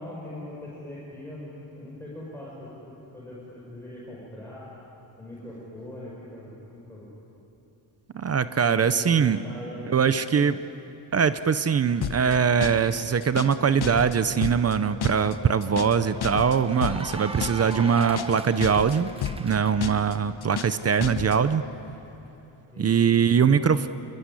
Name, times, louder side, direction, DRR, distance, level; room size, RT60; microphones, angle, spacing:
voice 1, 0.0-4.7 5.2-7.1 8.6-10.2 22.7-22.9, left 1 dB, 5° left, -6 dB, 5.3 m, -41 dB
voice 2, 8.1-9.4 9.9-10.6 11.1-19.1 19.4-21.6 22.8-23.9, right 7 dB, 30° right, 12 dB, 0.6 m, -22 dB
sound 1, 12.0-12.3 12.6-12.9 13.2-13.6 13.8-14.2 14.4-14.7 15.0-15.3 15.6-16.0 16.2-16.6 16.8-17.1 17.4-17.7 18.0-18.4 18.6-19.0 19.2-19.5 19.8-20.1 20.4-20.8 21.0-21.4, left 8 dB, 55° left, 1.4 m, -31 dB
Cheering / Applause, 14.8-19.7, right 2 dB, 10° right, 1.0 m, -40 dB
27.5 x 22.0 x 9.8 m, 3.0 s
wide cardioid pair, 170°, 47 cm